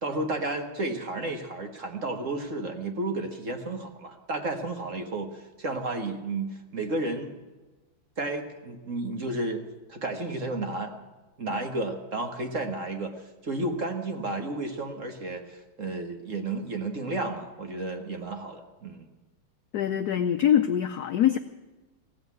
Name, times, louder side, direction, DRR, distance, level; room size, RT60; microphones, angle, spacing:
voice 1, 0.0-7.4 8.2-9.6 9.9-11.0 11.4-19.1, right 2 dB, 40° right, 5 dB, 1.6 m, -32 dB
voice 2, 19.7-21.4, left 10 dB, 75° left, 9 dB, 0.9 m, -23 dB
16.0 x 8.0 x 9.4 m, 1.2 s
omnidirectional pair, 2.4 m